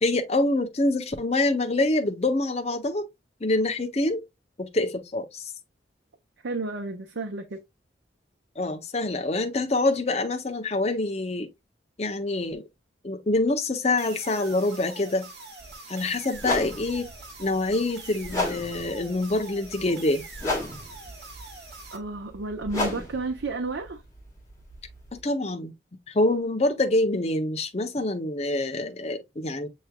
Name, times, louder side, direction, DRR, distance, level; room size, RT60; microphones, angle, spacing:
voice 1, 0.0-3.1 3.4-4.2 4.6-5.5 8.6-11.5 12.0-12.6 13.0-15.3 15.9-17.1 17.4-20.2 25.1-25.7 26.1-29.7, left 2 dB, 35° left, 0.6 m, -26 dB
voice 2, 6.4-7.6 21.9-24.0, right 3 dB, 85° right, 0.7 m, -32 dB
sound 1, 14.0-22.0, right 3 dB, 60° right, 1.4 m, -44 dB
sound 2, 15.6-15.7 16.4-25.2, left 2 dB, 15° left, 1.6 m, -34 dB
6.8 x 3.1 x 2.2 m
head